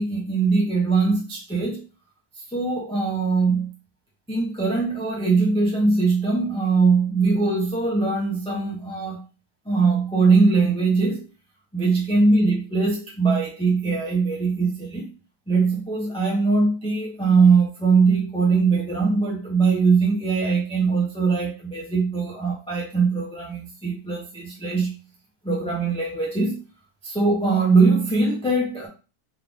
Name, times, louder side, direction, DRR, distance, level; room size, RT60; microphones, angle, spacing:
voice 1, 0.0-1.8 2.5-3.7 4.3-9.2 9.7-11.2 11.7-15.1 15.5-24.9 25.4-26.6 27.0-28.9, right 4 dB, 5° left, -4 dB, 0.8 m, -21 dB
3.5 x 3.4 x 3.5 m, 0.33 s
omnidirectional pair, 1.6 m